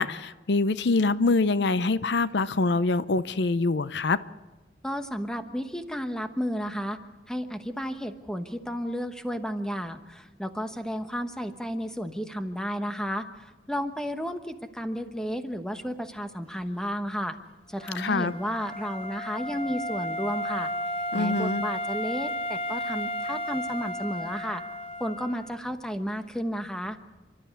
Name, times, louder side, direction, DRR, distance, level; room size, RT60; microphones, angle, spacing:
voice 1, 0.0-4.2 18.0-18.3 21.1-21.6, left 3 dB, 75° left, 0.6 m, -25 dB
voice 2, 4.8-7.0 7.3-17.4 17.7-20.7 21.1-24.6 25.0-27.0, equal, 5° left, 1.1 m, -32 dB
Wind instrument woodwind instrument, 17.8-25.6, left 1 dB, 35° left, 0.7 m, -33 dB
29.5 x 12.5 x 8.3 m
head